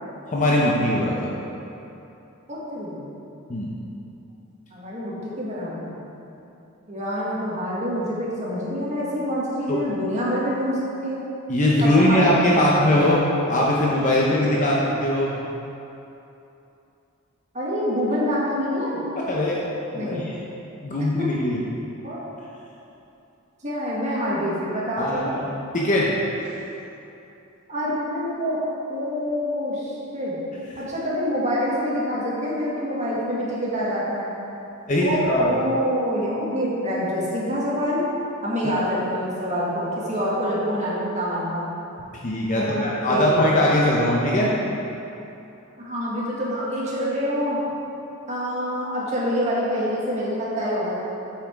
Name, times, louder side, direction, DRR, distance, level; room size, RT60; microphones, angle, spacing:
voice 1, 0.3-1.3 3.5-3.7 9.7-9.8 11.5-13.2 13.5-15.4 19.3-19.6 19.9-20.4 20.8-21.6 25.0-26.1 26.4-26.5 34.9-35.5 42.1-44.6, left 1 dB, 35° left, -4 dB, 0.8 m, -21 dB
voice 2, 2.5-3.0 4.7-5.9 6.9-11.2 11.8-12.8 17.5-19.0 19.9-20.3 21.2-21.3 22.0-22.2 23.6-25.4 27.7-30.4 30.8-34.3 35.0-38.0 38.4-41.7 42.5-43.5 45.8-47.6 48.3-51.0, equal, 35° right, -7 dB, 1.9 m, -26 dB
8.6 x 6.0 x 4.6 m, 2.9 s
head